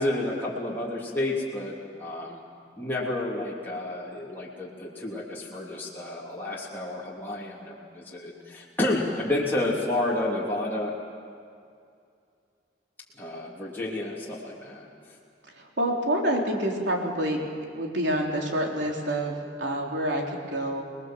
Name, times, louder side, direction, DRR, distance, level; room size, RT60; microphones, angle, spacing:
voice 1, 0.0-2.4 2.8-10.9 13.2-15.2, left 1 dB, 10° left, -6 dB, 3.1 m, -30 dB
voice 2, 15.5-17.4 17.7-20.8, right 1 dB, 90° right, 0 dB, 3.8 m, -27 dB
27.5 x 20.5 x 7.6 m, 2.4 s
head